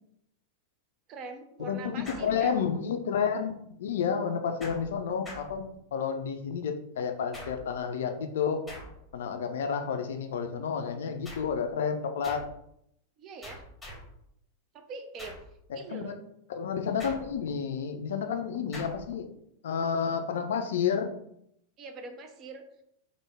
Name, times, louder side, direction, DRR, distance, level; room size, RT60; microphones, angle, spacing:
voice 1, 1.1-2.6 13.2-13.6 14.7-15.4 15.7-16.2 21.8-22.6, right 4 dB, 35° right, 6 dB, 0.5 m, -43 dB
voice 2, 1.6-8.7 9.1-12.4 15.9-16.1 16.5-19.3 19.6-21.1, left 6 dB, 60° left, 6 dB, 0.4 m, -30 dB
sound 1, 2.1-2.9 4.6-6.1 7.3-7.9 8.7-9.3 11.2-11.7 12.2-12.6 13.4-14.2 15.2-15.6 17.0-17.6 18.7-19.2, left 1 dB, 10° left, 1.0 m, -45 dB
3.4 x 2.1 x 3.3 m, 0.74 s
figure-of-eight pair, 90°, 0 cm